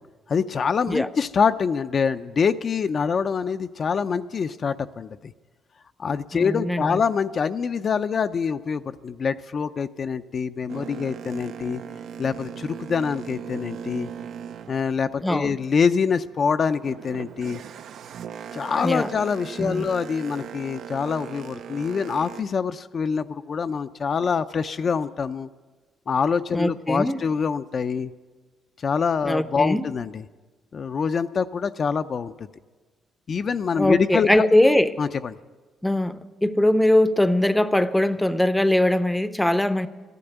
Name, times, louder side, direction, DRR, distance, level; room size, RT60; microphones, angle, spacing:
voice 1, 0.3-5.3 6.0-11.8 12.2-14.1 14.7-17.6 18.5-25.5 26.1-28.1 28.8-30.2 30.7-32.5 33.3-34.5 35.0-35.4, left 6 dB, 50° left, 0.5 m, -25 dB
voice 2, 6.3-7.0 15.2-15.6 18.8-19.1 19.6-19.9 26.5-27.2 29.2-29.8 33.8-34.9 35.8-39.9, left 1 dB, 5° left, 0.6 m, -21 dB
Boat Water vehicle, 10.7-15.7 16.1-22.4, right 8 dB, 70° right, 0.5 m, -39 dB
14.0 x 12.0 x 8.0 m
cardioid pair, 90°, 0 cm